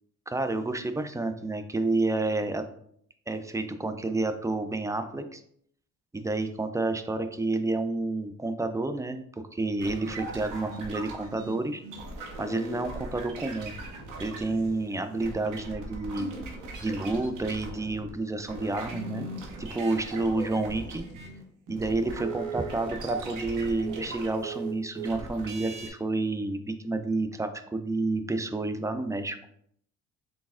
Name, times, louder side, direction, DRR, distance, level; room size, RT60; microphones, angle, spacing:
voice 1, 0.3-2.6 3.3-5.4 6.1-11.8 12.4-13.7 14.2-16.3 16.8-19.3 19.6-21.0 21.7-29.4, right 2 dB, 10° right, 8 dB, 0.3 m, -30 dB
sound 1, 9.8-18.1 18.4-25.9, right 3 dB, 80° right, 0.9 m, -39 dB
4.0 x 3.4 x 2.4 m, 0.65 s
cardioid pair, 90°, 30 cm